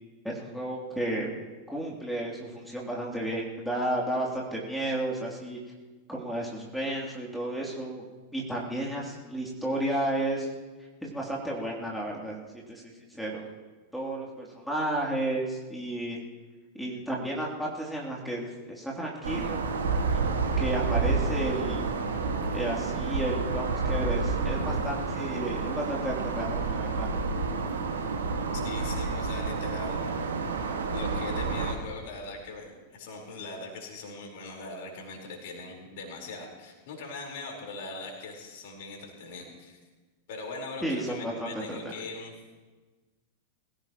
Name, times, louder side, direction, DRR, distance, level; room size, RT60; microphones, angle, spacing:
voice 1, 0.2-1.3 1.7-5.6 6.1-8.0 8.3-10.5 11.0-12.4 12.7-13.4 13.9-16.2 16.7-19.6 20.2-21.9 22.5-27.1 40.8-41.9, right 1 dB, ahead, -3 dB, 2.9 m, -32 dB
sound 1, 19.2-31.7, right 4 dB, 70° right, 1.7 m, -29 dB
voice 2, 28.5-30.1 30.9-39.8 40.3-42.3, left 3 dB, 50° left, 1 dB, 4.2 m, -41 dB
23.0 x 15.5 x 3.0 m, 1.3 s
figure-of-eight pair, 90°, 0 cm